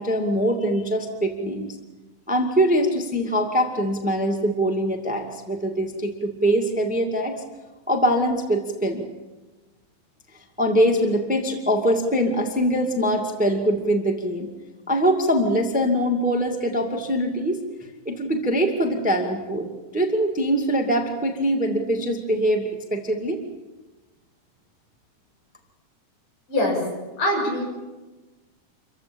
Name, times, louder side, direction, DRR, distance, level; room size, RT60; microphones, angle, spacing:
voice 1, 0.0-1.8 2.3-7.4 7.9-9.1 10.6-14.5 14.9-17.6 18.0-23.4, equal, 5° right, 4 dB, 1.6 m, -23 dB
voice 2, 26.5-26.8 27.2-27.7, left 1 dB, 80° left, 0 dB, 8.2 m, -23 dB
27.0 x 15.5 x 8.8 m, 1.2 s
omnidirectional pair, 3.7 m